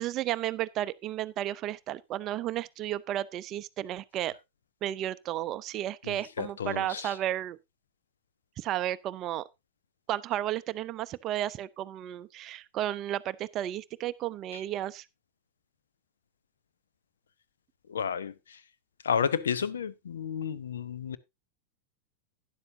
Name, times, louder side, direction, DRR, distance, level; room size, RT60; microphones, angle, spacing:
voice 1, 0.0-4.3 4.8-7.6 8.6-9.4 10.1-15.0, right 12 dB, 35° right, 0.5 m, -33 dB
voice 2, 6.1-7.1 17.9-18.3 19.0-21.2, left 7 dB, 65° left, 0.8 m, -31 dB
12.0 x 10.0 x 2.7 m
figure-of-eight pair, 90°, 0 cm